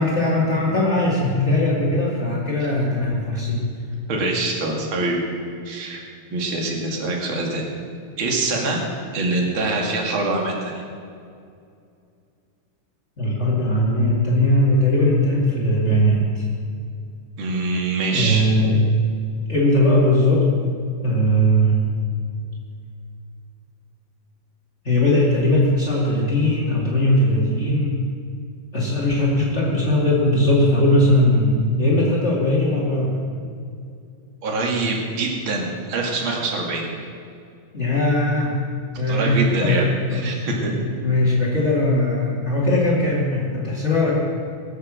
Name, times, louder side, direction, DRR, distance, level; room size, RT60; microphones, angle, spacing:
voice 1, 0.0-3.6 13.2-16.4 18.1-18.8 19.5-20.5 21.0-21.8 24.8-28.0 28.7-33.2 37.7-38.6 38.9-39.8 40.1-40.3 40.8-44.1, left 1 dB, 80° left, -6 dB, 0.6 m, -19 dB
voice 2, 4.1-5.2 5.6-6.0 6.3-7.7 8.2-8.8 9.1-10.7 17.4-18.4 34.4-36.9 39.1-39.9 40.1-40.7, right 3 dB, 50° right, 0 dB, 1.6 m, -24 dB
23.0 x 8.1 x 6.4 m, 2.4 s
omnidirectional pair, 5.7 m